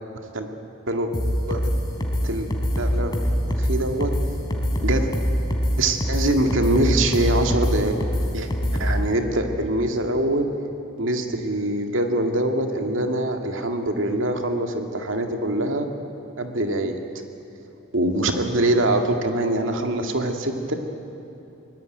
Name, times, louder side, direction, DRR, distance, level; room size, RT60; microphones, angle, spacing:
sound 1, 1.1-9.0, equal, 20° left, 3.6 m, -23 dB
voice 1, 2.8-3.1 3.5-4.1 4.8-5.1 5.8-7.9 8.3-10.5 11.0-15.9 16.4-17.0 17.9-20.7, right 1 dB, 75° right, 4 dB, 2.2 m, -23 dB
24.5 x 21.0 x 9.3 m, 2.9 s
head